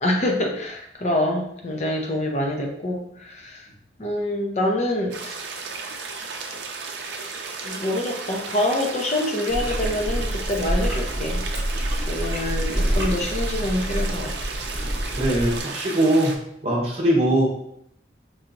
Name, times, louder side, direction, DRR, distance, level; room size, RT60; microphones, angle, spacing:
voice 1, 0.0-3.7 4.0-5.4 7.6-11.4 12.0-14.5, left 1 dB, 35° left, 1 dB, 0.6 m, -26 dB
sound 1, 5.1-16.4, right 4 dB, 70° right, 0.5 m, -34 dB
Chewing mastication, 9.5-15.6, right 1 dB, 15° right, 1.2 m, -27 dB
voice 2, 15.2-16.4 16.6-17.5, right 1 dB, 35° right, -3 dB, 0.9 m, -20 dB
4.6 x 2.8 x 2.5 m, 0.72 s
head